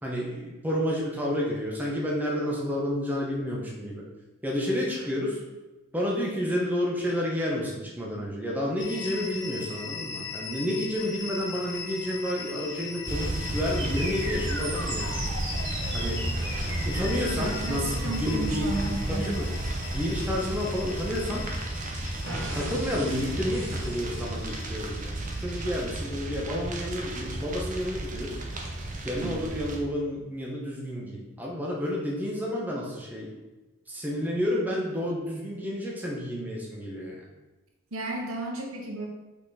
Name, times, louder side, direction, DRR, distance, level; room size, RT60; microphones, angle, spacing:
voice 1, 0.0-4.0 4.4-5.4 5.9-15.2 15.9-16.2 16.8-18.8 19.1-19.5 19.9-21.5 22.5-28.4 29.0-33.3 33.9-37.3, equal, 10° right, -4 dB, 1.1 m, -30 dB
sound 1, 8.8-25.9, left 5 dB, 60° left, 0.9 m, -40 dB
sound 2, 13.1-29.8, right 1 dB, 35° right, 0.8 m, -33 dB
sound 3, 13.8-21.7 22.2-24.8, right 2 dB, 60° right, 1.3 m, -39 dB
voice 2, 17.4-19.4 29.2-29.3 37.9-39.1, right 2 dB, 90° right, 0 dB, 1.2 m, -33 dB
5.6 x 4.3 x 4.2 m, 1.1 s
head